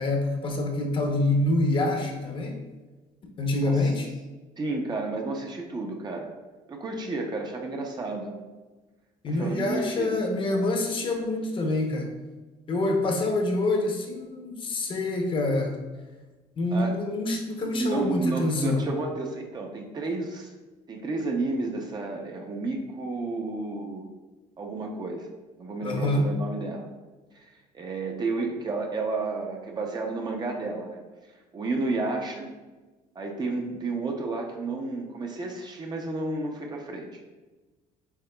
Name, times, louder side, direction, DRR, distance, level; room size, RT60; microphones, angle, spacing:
voice 1, 0.0-2.6 3.4-4.1 9.2-12.1 12.7-15.8 16.6-18.8 25.8-26.3, left 2 dB, 40° left, 2 dB, 0.8 m, -26 dB
voice 2, 4.6-6.3 6.7-8.3 9.3-10.2 16.7-17.0 17.6-20.5 20.9-24.1 24.6-25.3 25.6-26.9 27.3-31.0 31.5-32.5 33.2-37.3, right 3 dB, 30° right, 2 dB, 0.7 m, -31 dB
8.0 x 2.8 x 2.3 m, 1.2 s
cardioid pair, 110°, 14 cm